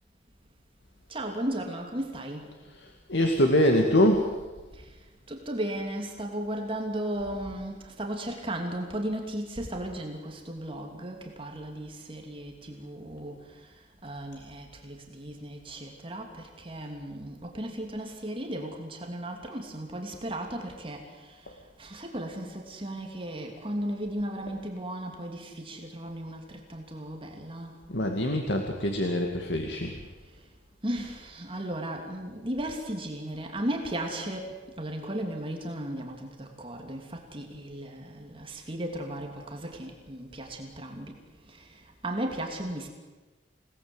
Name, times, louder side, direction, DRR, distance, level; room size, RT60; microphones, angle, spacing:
voice 1, 1.1-2.5 4.7-27.8 29.9-30.0 30.8-41.2 41.4-42.9, right 1 dB, 30° right, 2 dB, 3.0 m, -36 dB
voice 2, 3.1-4.3 21.5-21.6 27.9-29.9, left 1 dB, 70° left, 3 dB, 2.3 m, -24 dB
29.0 x 18.5 x 8.1 m, 1.3 s
head